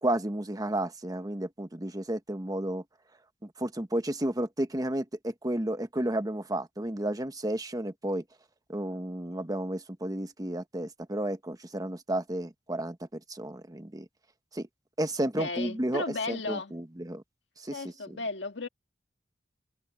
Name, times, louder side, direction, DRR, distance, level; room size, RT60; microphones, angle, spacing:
voice 1, 0.0-2.8 3.4-8.2 8.7-14.0 14.5-14.7 15.0-17.2 17.6-18.2, right 1 dB, 20° right, 1.2 m, -32 dB
voice 2, 15.4-16.7 17.7-18.7, left 3 dB, 75° left, 1.9 m, -34 dB
head